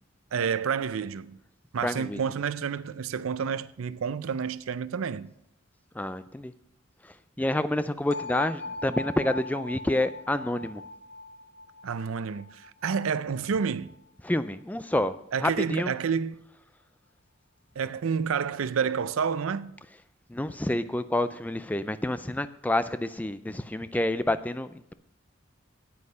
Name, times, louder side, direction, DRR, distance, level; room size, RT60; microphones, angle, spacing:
voice 1, 0.3-1.4 1.7-5.3 11.8-14.0 15.3-16.4 17.8-19.7, right 6 dB, 85° right, 0.5 m, -29 dB
voice 2, 1.8-2.2 5.9-6.5 7.0-10.8 14.2-15.9 20.3-24.9, left 1 dB, 10° left, 0.3 m, -28 dB
sound 1, 8.1-13.9, left 2 dB, 60° left, 0.9 m, -40 dB
9.5 x 8.7 x 5.4 m
head